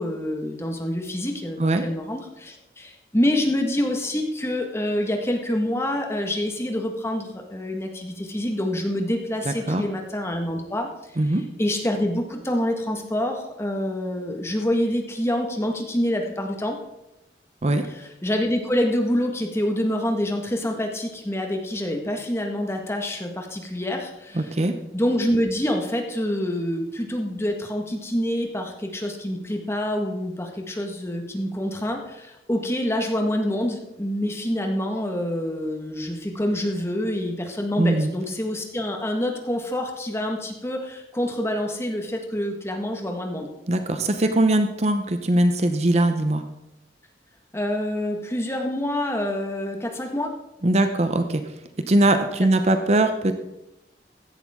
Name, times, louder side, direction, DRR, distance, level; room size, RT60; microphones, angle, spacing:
voice 1, 0.0-10.9 11.6-16.7 17.9-24.4 24.9-43.5 47.5-50.3, left 1 dB, 15° left, 3 dB, 1.6 m, -26 dB
voice 2, 9.5-9.8 11.2-11.4 17.6-17.8 24.3-24.7 37.8-38.1 43.7-46.4 50.6-51.4 51.9-53.4, right 1 dB, 40° right, 8 dB, 0.8 m, -21 dB
15.5 x 11.5 x 3.7 m, 0.93 s
head